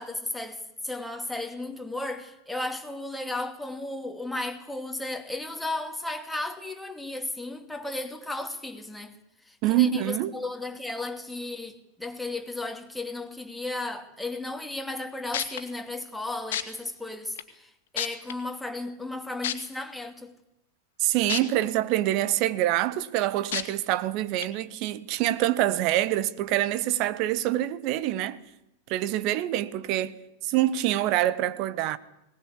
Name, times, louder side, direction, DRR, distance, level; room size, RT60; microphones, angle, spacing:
voice 1, 0.0-9.1 9.5-20.3, left 2 dB, 5° left, 2.7 m, -34 dB
voice 2, 9.6-10.4 21.0-28.4 28.9-30.1 30.4-32.0, right 14 dB, 40° right, 1.4 m, -25 dB
sound 1, 15.0-15.1 15.3-15.6 16.5-16.6 17.4-17.5 18.0-18.3 19.4-19.5 21.3-21.4 21.9-22.0 23.5-23.6 24.4-24.5, left 10 dB, 55° left, 2.1 m, -28 dB
20.5 x 19.0 x 8.5 m
figure-of-eight pair, 90°, 0 cm